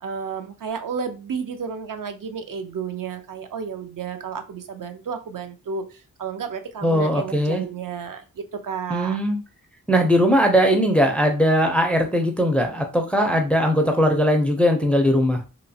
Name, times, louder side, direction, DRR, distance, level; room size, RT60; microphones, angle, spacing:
voice 1, 0.0-9.2, right 6 dB, 65° right, 7 dB, 0.5 m, -32 dB
voice 2, 6.8-7.6 8.9-9.4 9.9-15.4, equal, 5° left, 3 dB, 0.4 m, -19 dB
2.9 x 2.0 x 2.6 m, 0.32 s
wide cardioid pair, 100°, 36 cm